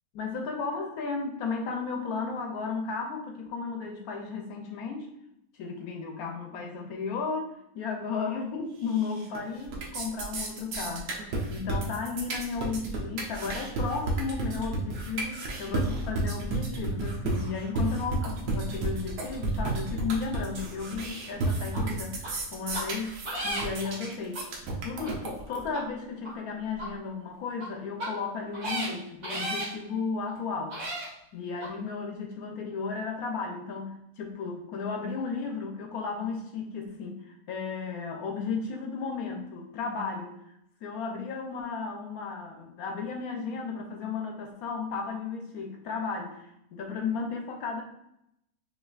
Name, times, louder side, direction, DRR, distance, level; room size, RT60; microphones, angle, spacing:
voice 1, 0.1-5.1 5.5-23.2 23.4-24.5 24.8-30.8 31.3-40.4 40.8-47.8, left 5 dB, 70° left, 2 dB, 1.0 m, -34 dB
sound 1, 8.9-9.4 9.6-25.6, right 2 dB, 85° right, 1.4 m, -32 dB
sound 2, 21.7-21.8 22.2-22.3 22.7-22.8 23.2-23.9 24.3-24.4 25.0-25.1 25.7-25.8 26.2-26.3 26.8-26.9 27.5-27.6 28.0-28.1 28.5-28.9 29.2-29.7 30.3-30.4 30.7-31.1 31.6-31.7, right 1 dB, 70° right, 1.9 m, -33 dB
5.4 x 2.7 x 2.3 m, 0.79 s
omnidirectional pair, 1.7 m